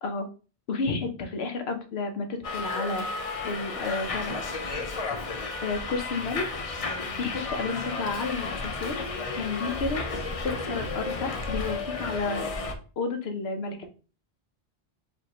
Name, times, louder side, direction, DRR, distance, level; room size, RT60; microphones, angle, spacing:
voice 1, 0.7-3.1 3.4-4.3 5.6-6.5 7.2-9.0 9.4-10.0 10.4-12.5 13.0-13.9, left 3 dB, 80° left, 7 dB, 1.0 m, -31 dB
Subway metro underground, 2.4-12.7, left 3 dB, 45° left, 0.5 m, -33 dB
5.2 x 2.6 x 2.9 m, 0.36 s
omnidirectional pair, 1.1 m